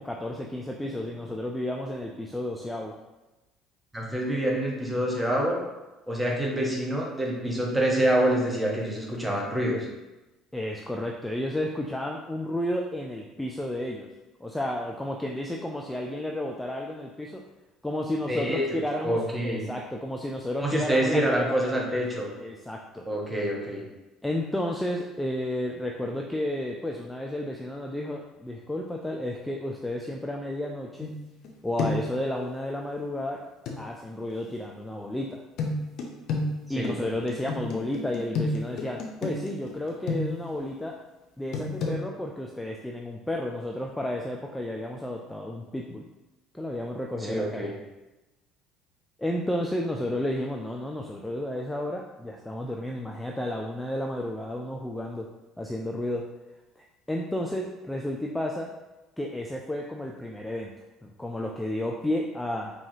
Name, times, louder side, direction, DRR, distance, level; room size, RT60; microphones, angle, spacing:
voice 1, 0.0-3.0 10.5-14.1 14.4-17.4 17.8-19.2 19.4-22.0 22.4-23.0 24.2-31.1 31.6-33.4 33.8-35.4 36.7-41.0 41.4-46.0 46.5-47.7 49.2-55.3 55.6-56.3 57.1-58.7 59.2-60.7 61.0-62.7, left 1 dB, 5° left, 0 dB, 0.4 m, -32 dB
voice 2, 3.9-5.6 6.1-9.9 18.3-19.6 20.6-22.3 23.1-23.8 36.8-37.0 47.2-47.7, right 1 dB, 15° right, -1 dB, 1.0 m, -26 dB
sound 1, 31.0-31.5 31.8-32.2 33.7-33.8 35.6-40.6 41.5-42.0, left 2 dB, 55° left, 0.6 m, -31 dB
4.6 x 2.8 x 2.8 m, 1.1 s
figure-of-eight pair, 55°, 0 cm